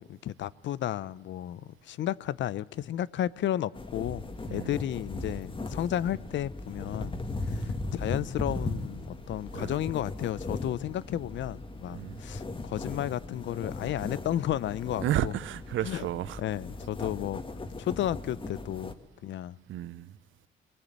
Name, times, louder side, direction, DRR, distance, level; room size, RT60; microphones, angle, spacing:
voice 1, 0.0-7.2 7.5-15.3 15.8-16.1 16.4-17.4 17.8-18.9 19.2-19.6, left 12 dB, 70° left, 0.7 m, -33 dB
sound 1, 3.7-18.9, left 2 dB, 25° left, 2.0 m, -38 dB
voice 2, 15.0-16.4 19.7-20.1, right 13 dB, 75° right, 0.7 m, -32 dB
23.0 x 19.0 x 8.8 m
cardioid pair, 90°, 20 cm